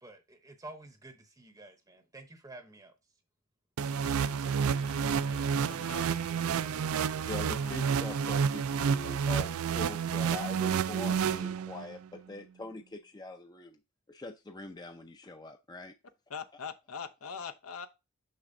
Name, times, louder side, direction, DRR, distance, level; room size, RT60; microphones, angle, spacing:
voice 1, 0.0-2.9, right 2 dB, 15° right, 0.7 m, -50 dB
sound 1, 3.8-11.9, right 6 dB, 70° right, 0.4 m, -30 dB
voice 2, 4.3-6.0 16.3-17.9, left 6 dB, 70° left, 0.7 m, -43 dB
Wind instrument woodwind instrument, 4.5-8.8, right 4 dB, 85° right, 1.7 m, -49 dB
voice 3, 7.2-13.8 14.1-16.0, left 2 dB, 20° left, 0.5 m, -43 dB
6.5 x 6.0 x 2.6 m
head